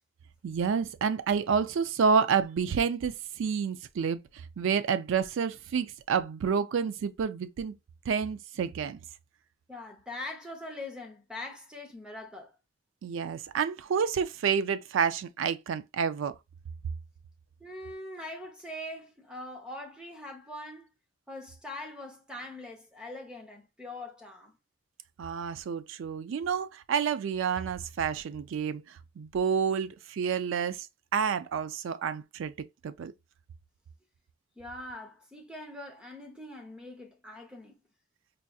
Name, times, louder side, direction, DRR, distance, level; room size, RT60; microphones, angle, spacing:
voice 1, 0.4-4.2 4.6-7.7 8.1-9.0 13.0-16.3 25.2-30.9 31.1-32.5 32.8-33.1, right 6 dB, 70° right, 0.3 m, -29 dB
voice 2, 9.7-12.5 17.6-20.9 21.3-24.6 34.6-37.8, left 1 dB, 5° right, 0.6 m, -42 dB
4.5 x 2.6 x 2.3 m
head